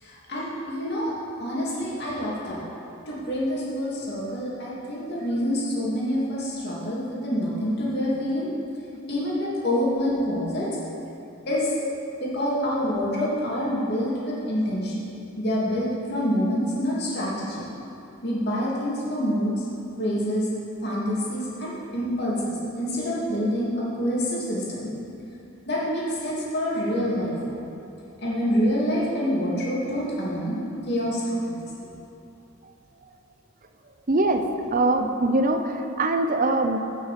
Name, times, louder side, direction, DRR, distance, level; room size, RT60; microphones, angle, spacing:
voice 1, 0.0-2.6 3.1-8.5 9.1-10.9 11.5-11.7 12.2-14.9 15.4-17.7 18.2-19.6 20.0-20.5 20.8-24.9 25.7-27.3 28.2-31.6, equal, 50° left, -6 dB, 2.9 m, -27 dB
voice 2, 34.1-34.4 34.7-36.8, right 2 dB, 40° right, 6 dB, 0.7 m, -22 dB
16.0 x 6.4 x 5.2 m, 2.8 s
head